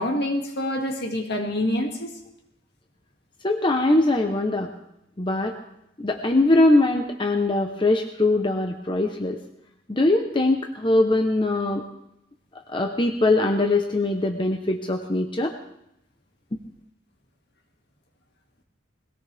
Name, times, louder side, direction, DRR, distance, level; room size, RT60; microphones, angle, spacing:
voice 1, 0.0-2.1, left 1 dB, 55° left, 2 dB, 2.2 m, -26 dB
voice 2, 3.4-4.7 5.2-5.5 6.0-9.4 9.9-11.8 12.7-15.5, left 2 dB, 25° left, 3 dB, 0.9 m, -21 dB
21.0 x 17.5 x 3.5 m, 0.82 s
head